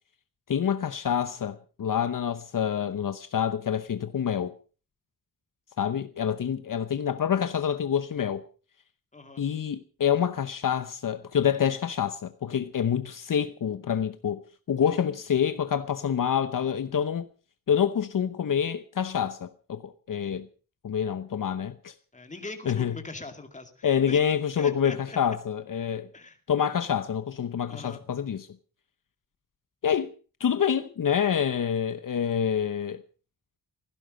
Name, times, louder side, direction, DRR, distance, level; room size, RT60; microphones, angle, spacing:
voice 1, 0.5-4.5 5.8-8.4 9.4-14.4 14.7-17.3 17.7-20.5 20.8-21.9 22.7-23.0 23.8-26.1 26.5-28.5 29.8-30.1 30.4-33.0, left 8 dB, 60° left, 0.9 m, -27 dB
voice 2, 9.1-9.4 14.8-15.0 15.3-15.5 22.1-24.2 24.6-25.2 26.1-26.4 27.7-28.1, left 3 dB, 20° left, 2.4 m, -42 dB
17.0 x 15.5 x 5.2 m
wide cardioid pair, 175°, 36 cm